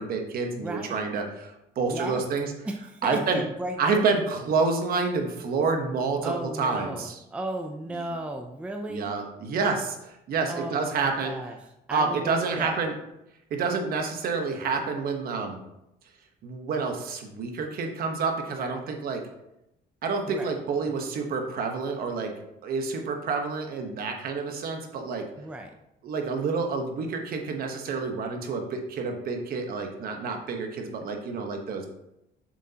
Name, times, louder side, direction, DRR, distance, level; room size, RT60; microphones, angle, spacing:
voice 1, 0.0-2.5 3.0-3.4 3.8-7.2 7.9-8.2 8.9-11.3 11.9-12.9 13.5-15.6 16.4-19.2 20.0-22.3 22.6-25.2 26.0-31.9, right 4 dB, 55° right, 4 dB, 1.1 m, -28 dB
voice 2, 0.6-1.0 1.8-2.2 2.7-4.1 6.2-9.2 10.5-11.6 11.9-12.8 20.3-20.5 25.4-25.7, right 1 dB, 5° right, 4 dB, 0.4 m, -35 dB
7.3 x 6.3 x 2.9 m, 0.86 s
cardioid pair, 150°, 18 cm